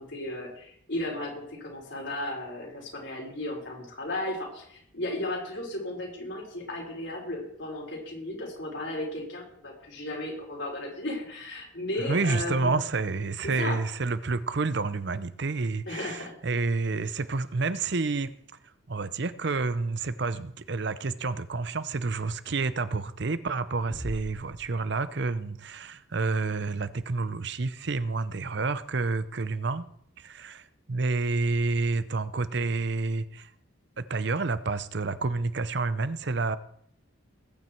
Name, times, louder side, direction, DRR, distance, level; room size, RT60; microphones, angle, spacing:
voice 1, 0.0-12.8 13.4-13.8 15.9-16.3, left 1 dB, 60° left, -1 dB, 4.7 m, -35 dB
voice 2, 12.1-18.3 18.9-29.9 30.2-33.5 34.0-36.6, right 3 dB, 55° right, 14 dB, 0.7 m, -29 dB
sound 1, 23.9-25.6, equal, 15° left, 2.4 m, -41 dB
20.0 x 9.2 x 4.5 m, 0.68 s
head